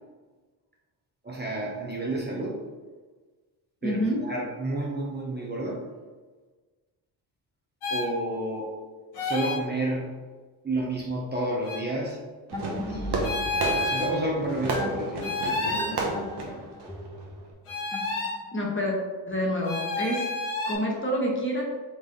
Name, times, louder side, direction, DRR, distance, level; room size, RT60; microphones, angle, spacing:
voice 1, 1.2-2.6 3.8-5.8 7.9-8.7 9.2-10.2 10.6-12.3 12.8-16.7, right 1 dB, 20° right, -3 dB, 0.9 m, -31 dB
voice 2, 3.8-4.2 18.5-18.9 19.3-20.2 20.7-21.6, equal, 25° left, -2 dB, 1.5 m, -27 dB
sound 1, 7.8-8.1 9.1-9.6 11.6-11.8 13.2-14.1 15.2-16.0 17.7-18.4 19.6-20.7, left 3 dB, 85° left, 1.4 m, -29 dB
sound 2, 12.5-18.7, left 1 dB, 5° left, 0.7 m, -38 dB
Fireworks, 12.5-17.5, right 3 dB, 50° right, 1.1 m, -33 dB
4.1 x 3.5 x 3.3 m, 1.3 s
supercardioid pair, 50°, 49 cm